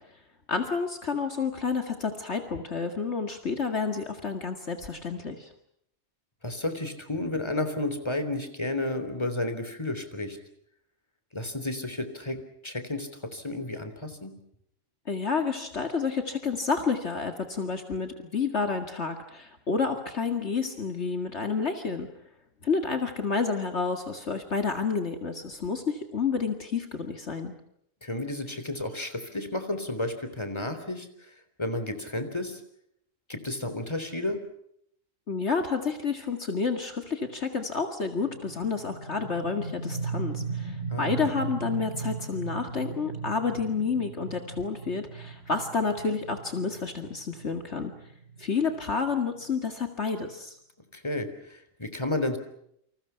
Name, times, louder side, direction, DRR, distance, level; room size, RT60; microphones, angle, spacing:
voice 1, 0.5-5.5 15.1-22.1 22.6-27.5 35.3-47.9 48.4-50.6, left 5 dB, 55° left, 6 dB, 2.3 m, -30 dB
voice 2, 6.4-10.4 11.3-14.4 28.0-31.3 31.6-32.6 33.3-34.4 40.9-41.3 50.9-52.4, left 2 dB, 20° left, 9 dB, 3.6 m, -32 dB
sound 1, 38.1-49.6, right 5 dB, 75° left, 5.8 m, -38 dB
29.0 x 27.0 x 5.8 m, 0.73 s
omnidirectional pair, 1.4 m